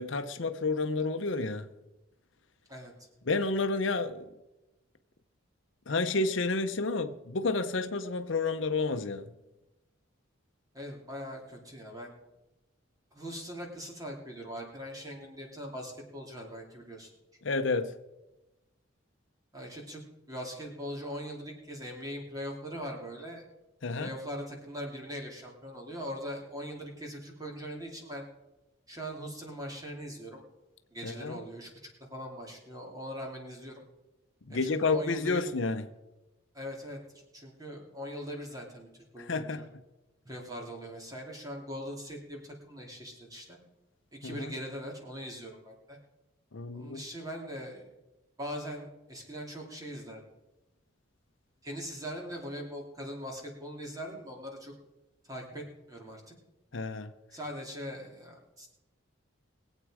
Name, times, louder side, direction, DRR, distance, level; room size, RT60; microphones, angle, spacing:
voice 1, 0.0-1.7 3.3-4.2 5.9-9.3 17.4-17.9 23.8-24.1 31.0-31.4 34.5-35.8 39.2-39.7 44.2-44.5 46.5-47.0 56.7-57.1, left 3 dB, 65° left, 0.7 m, -30 dB
voice 2, 2.7-3.1 10.7-12.1 13.1-17.1 19.5-20.0 20.3-23.4 24.0-28.2 28.9-30.4 30.9-31.7 32.1-33.8 34.5-35.4 36.5-39.6 40.2-43.6 44.2-46.0 46.7-47.9 48.4-50.2 51.6-54.7 55.2-56.3 57.3-58.7, equal, 20° right, 2.8 m, -41 dB
21.5 x 8.3 x 4.9 m
head